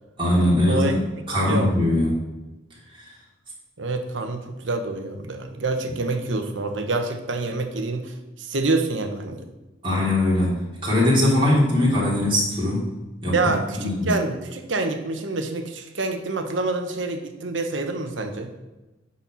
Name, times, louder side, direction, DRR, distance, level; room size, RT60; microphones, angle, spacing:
voice 1, 0.2-1.0 1.3-2.2 2.9-3.1 9.8-12.9 13.2-14.1, left 1 dB, 25° right, -6 dB, 3.4 m, -21 dB
voice 2, 3.8-9.5 13.3-18.5, right 3 dB, 70° right, 6 dB, 1.1 m, -27 dB
9.8 x 4.3 x 6.1 m, 1.1 s
head